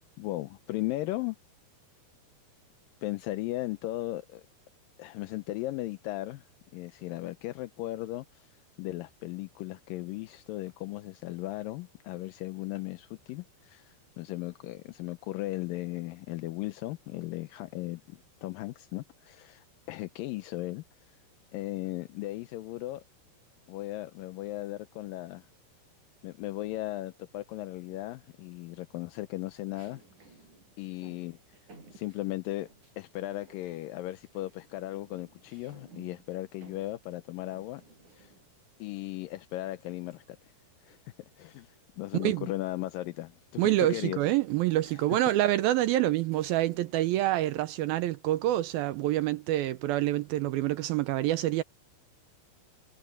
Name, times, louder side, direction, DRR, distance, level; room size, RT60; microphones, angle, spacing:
voice 1, 0.2-1.4 3.0-4.4 5.0-8.5 8.8-20.8 21.5-23.0 23.7-25.5 26.2-30.4 30.8-31.6 31.9-32.7 33.0-37.8 38.2-38.3 38.8-40.4 40.8-41.0 41.4-44.2 44.8-45.0, left 17 dB, 75° left, 2.1 m, -37 dB
sound 1, 27.9-28.4 29.7-33.1 33.4-34.0 34.2-38.7 39.8-41.2 41.7-42.0 42.3-47.1, right 3 dB, 50° right, 9.2 m, -58 dB
voice 2, 43.6-51.6, right 14 dB, 80° right, 2.3 m, -27 dB
omnidirectional pair, 4.7 m